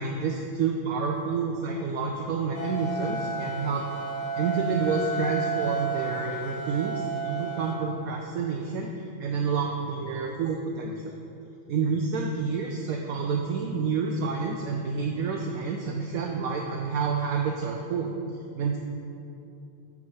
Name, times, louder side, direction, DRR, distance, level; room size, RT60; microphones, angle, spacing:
voice 1, 0.0-3.8 4.4-8.9 9.2-11.1 11.7-18.1 18.6-18.8, right 5 dB, 70° right, 2 dB, 0.9 m, -29 dB
sound 1, 2.5-7.7, right 4 dB, 60° left, 1.5 m, -32 dB
7.2 x 5.8 x 4.6 m, 2.6 s
omnidirectional pair, 1.7 m